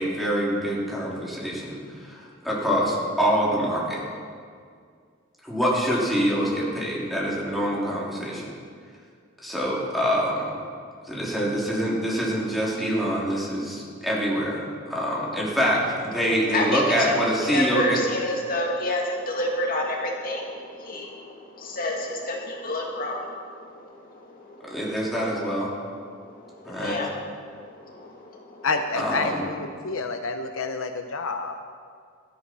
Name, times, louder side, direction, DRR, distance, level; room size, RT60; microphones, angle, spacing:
voice 1, 0.0-4.0 5.4-8.5 9.4-10.5 11.1-14.6 14.9-18.0 24.7-25.7 26.6-27.0 28.9-29.4, equal, ahead, -6 dB, 3.8 m, -25 dB
voice 2, 16.5-24.8 26.1-28.7, left 1 dB, 45° left, 0 dB, 2.2 m, -30 dB
voice 3, 28.6-31.6, left 3 dB, 75° left, 6 dB, 0.8 m, -29 dB
17.5 x 14.0 x 4.8 m, 2.1 s
head